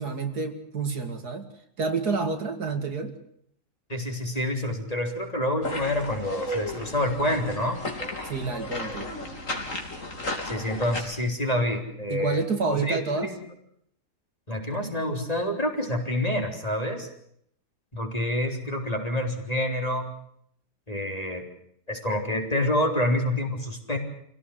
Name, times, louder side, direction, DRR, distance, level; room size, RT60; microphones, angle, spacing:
voice 1, 0.0-1.5 1.8-3.1 8.3-9.1 12.1-13.3, right 4 dB, 65° right, 6 dB, 2.8 m, -28 dB
voice 2, 3.9-7.8 10.4-12.4 12.7-13.4 14.5-17.1 17.9-20.1 20.9-21.5 21.9-24.0, left 1 dB, 20° left, 3 dB, 3.9 m, -27 dB
sound 1, 5.6-11.0, left 1 dB, 50° left, 4.0 m, -34 dB
26.5 x 17.0 x 7.8 m, 0.70 s
omnidirectional pair, 1.8 m